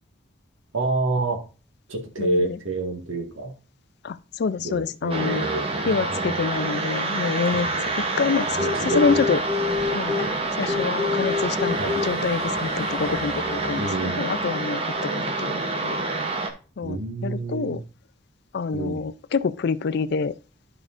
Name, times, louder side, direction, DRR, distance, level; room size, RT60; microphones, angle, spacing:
voice 1, 0.7-1.4 1.9-3.5 4.6-6.5 7.5-7.9 8.5-9.2 11.8-12.0 13.8-14.3 16.8-17.8 18.7-19.1, right 2 dB, 70° right, 1.6 m, -28 dB
voice 2, 4.0-5.5 5.9-7.7 8.2-9.4 9.8-10.2 10.5-11.8 12.0-16.0 16.8-17.0 17.2-17.8 18.5-20.3, left 5 dB, 50° left, 0.3 m, -26 dB
sound 1, 5.1-16.5, right 1 dB, 25° right, 0.8 m, -26 dB
Traffic sound, 8.2-14.1, left 2 dB, 15° left, 0.7 m, -40 dB
12.0 x 4.9 x 2.5 m
head